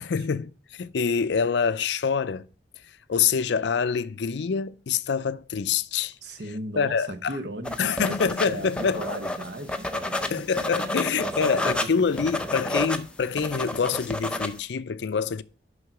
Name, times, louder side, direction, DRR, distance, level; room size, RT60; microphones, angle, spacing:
voice 1, 0.0-2.5 3.1-6.2 6.8-7.4 7.8-9.1 10.3-15.4, left 6 dB, 75° left, 0.4 m, -26 dB
voice 2, 6.2-12.6, right 1 dB, 70° right, 1.0 m, -37 dB
sound 1, 7.6-14.6, left 1 dB, 5° left, 0.5 m, -30 dB
6.5 x 5.6 x 5.9 m
head